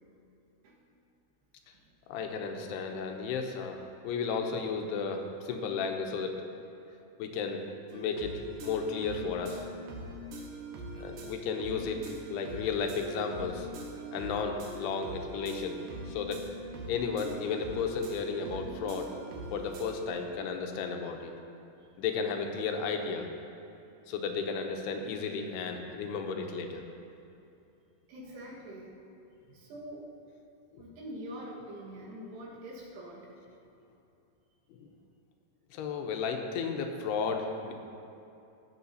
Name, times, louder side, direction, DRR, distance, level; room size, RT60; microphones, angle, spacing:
voice 1, 2.1-3.8 4.0-6.4 7.2-7.6 7.9-9.6 11.0-12.0 12.3-13.7 14.1-15.8 16.1-16.5 16.9-19.1 19.5-21.3 22.0-23.3 24.1-26.8 30.7-30.8 34.7-34.9 35.7-37.7, left 5 dB, 90° left, 4 dB, 2.7 m, -33 dB
sound 1, 7.9-20.1, right 2 dB, 65° right, 2.1 m, -43 dB
voice 2, 28.1-29.0 29.5-30.1 30.8-33.3, equal, 90° right, -4 dB, 3.5 m, -44 dB
18.0 x 6.4 x 2.7 m, 2.7 s
omnidirectional pair, 4.6 m